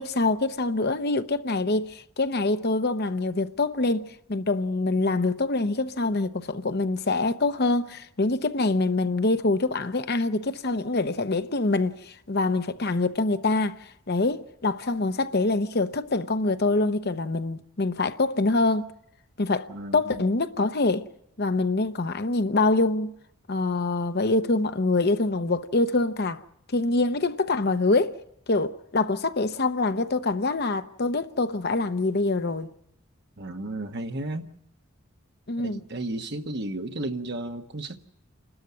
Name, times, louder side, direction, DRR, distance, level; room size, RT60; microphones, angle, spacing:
voice 1, 0.0-13.8 14.1-18.9 19.4-21.1 21.4-23.1 23.5-26.4 26.7-28.2 28.5-32.7 35.5-35.8, left 2 dB, 50° left, 0.8 m, -25 dB
voice 2, 19.7-20.3 33.4-34.5 35.6-38.0, right 2 dB, 50° right, 1.4 m, -33 dB
28.5 x 13.0 x 9.6 m
head